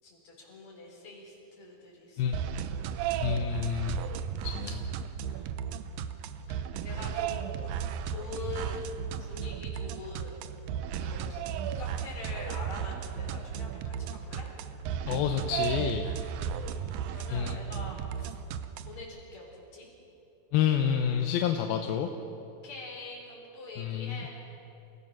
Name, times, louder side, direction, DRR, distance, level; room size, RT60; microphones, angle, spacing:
voice 1, 0.0-3.1 5.3-5.5 6.4-7.6 8.0-8.9 9.2-10.4 10.9-11.4 11.8-14.5 16.4-18.3 18.9-19.9 22.4-24.3, left 3 dB, 45° left, -2 dB, 5.5 m, -45 dB
sound 1, 2.3-19.0, right 8 dB, 80° right, 2.1 m, -35 dB
voice 2, 3.2-4.0 4.4-4.8 15.1-16.1 17.3-17.6 20.5-22.1 23.8-24.2, left 9 dB, 75° left, 4 dB, 2.5 m, -28 dB
29.0 x 16.5 x 6.0 m, 2.9 s
omnidirectional pair, 4.8 m